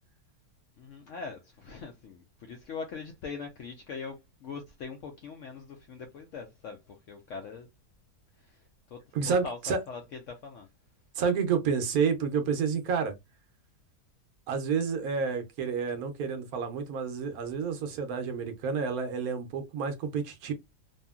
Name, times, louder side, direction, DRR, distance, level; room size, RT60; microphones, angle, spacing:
voice 1, 0.8-7.7 8.4-10.7, left 5 dB, 70° left, 0.7 m, -42 dB
voice 2, 9.1-9.8 11.2-13.1 14.5-20.5, right 6 dB, 70° right, 1.0 m, -29 dB
2.7 x 2.7 x 2.2 m
omnidirectional pair, 1.7 m